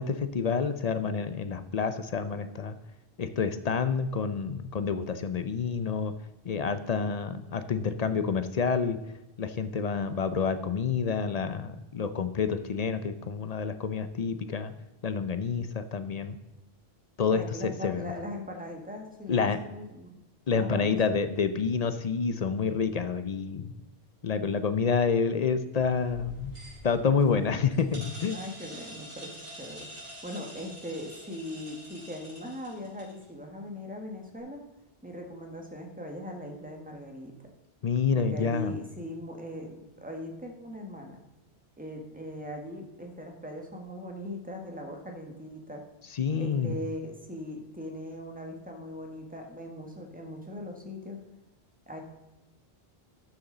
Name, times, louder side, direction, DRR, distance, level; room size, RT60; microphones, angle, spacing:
voice 1, 0.0-2.8 3.2-6.1 6.4-9.0 9.4-14.7 15.0-16.4 17.2-18.1 19.3-19.6 20.5-23.7 24.2-26.6 26.8-28.4 37.8-38.7 46.1-46.8, left 5 dB, 50° left, 11 dB, 0.6 m, -28 dB
voice 2, 17.3-20.1 20.5-21.0 28.3-29.9 30.2-34.6 35.0-37.4 38.1-41.2 41.8-45.8 46.4-51.2 51.9-52.0, left 1 dB, 10° right, 2 dB, 1.5 m, -40 dB
sound 1, 25.8-33.2, equal, 70° right, 4.4 m, -46 dB
12.5 x 7.0 x 3.8 m, 0.98 s
omnidirectional pair, 1.1 m